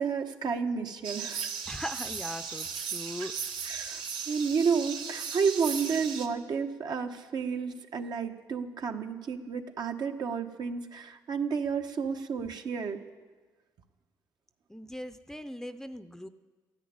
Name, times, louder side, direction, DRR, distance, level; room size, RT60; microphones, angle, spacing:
voice 1, 0.0-1.5 3.6-13.0, right 5 dB, 60° right, 5 dB, 1.2 m, -31 dB
sound 1, 1.0-6.3, right 6 dB, 85° right, 1.1 m, -36 dB
voice 2, 1.7-3.6 14.7-16.3, left 1 dB, 5° left, 11 dB, 0.6 m, -40 dB
13.0 x 10.5 x 9.6 m, 1.4 s
cardioid pair, 80°, 8 cm